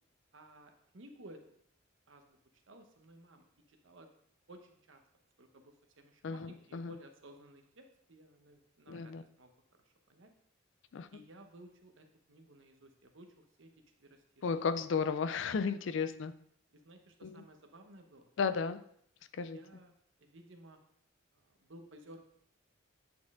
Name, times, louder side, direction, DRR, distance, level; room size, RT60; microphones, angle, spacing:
voice 1, 0.3-1.5 2.1-4.1 4.5-5.0 5.4-9.5 9.8-10.3 11.1-13.7 14.0-14.5 16.7-18.3 19.5-19.9 20.2-20.8 21.3-22.2, right 1 dB, 65° right, 5 dB, 0.9 m, -56 dB
voice 2, 6.2-6.9 8.9-9.2 10.9-11.1 14.4-16.3 17.2-17.4 18.4-18.8 19.3-19.6, left 5 dB, 60° left, 13 dB, 0.4 m, -34 dB
8.6 x 4.3 x 3.6 m, 0.67 s
head